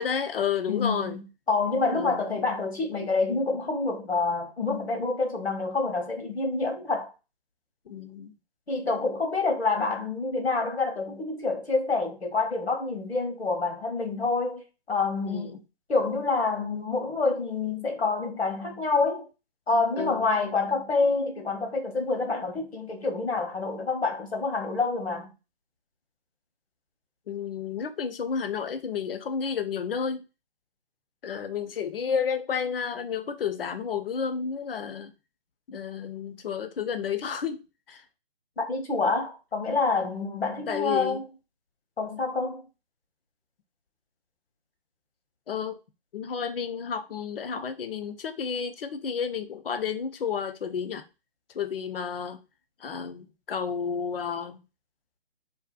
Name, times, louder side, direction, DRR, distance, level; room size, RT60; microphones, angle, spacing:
voice 1, 0.0-1.2 1.9-2.2 7.9-8.3 15.2-15.5 20.0-20.3 27.3-30.2 31.2-35.1 35.7-37.6 37.9-38.0 40.7-41.2 45.5-45.8 46.1-51.0 51.5-52.4 52.8-54.6, left 7 dB, 65° left, 0.5 m, -31 dB
voice 2, 0.7-7.1 8.7-14.6 14.9-15.6 15.9-19.3 19.7-25.3 38.6-41.3 42.0-42.6, left 3 dB, 85° left, 1.0 m, -27 dB
2.6 x 2.0 x 2.4 m
figure-of-eight pair, 145°, 31 cm